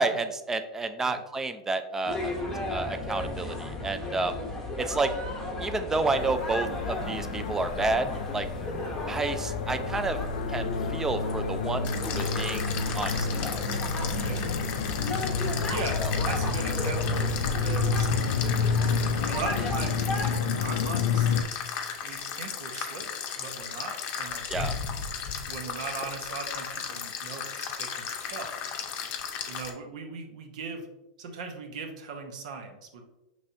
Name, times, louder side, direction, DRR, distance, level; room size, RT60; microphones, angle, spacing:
voice 1, 0.0-2.3 2.7-4.4 4.8-5.1 5.6-8.1 8.3-8.5 9.1-10.2 10.5-13.6 16.0-16.1 24.5-24.7, right 3 dB, 10° right, 9 dB, 0.4 m, -30 dB
sound 1, 2.1-20.4, left 2 dB, 10° left, 0.9 m, -35 dB
sound 2, 6.1-21.4, left 5 dB, 85° left, 0.4 m, -30 dB
sound 3, 11.8-29.7, left 7 dB, 45° left, 0.6 m, -36 dB
voice 2, 15.7-18.1 19.3-21.4 22.0-24.7 25.5-28.5 29.5-30.9 31.2-33.0, right 4 dB, 70° right, 4 dB, 0.8 m, -39 dB
5.3 x 3.2 x 2.6 m, 0.97 s
hypercardioid pair, 120°, 4 cm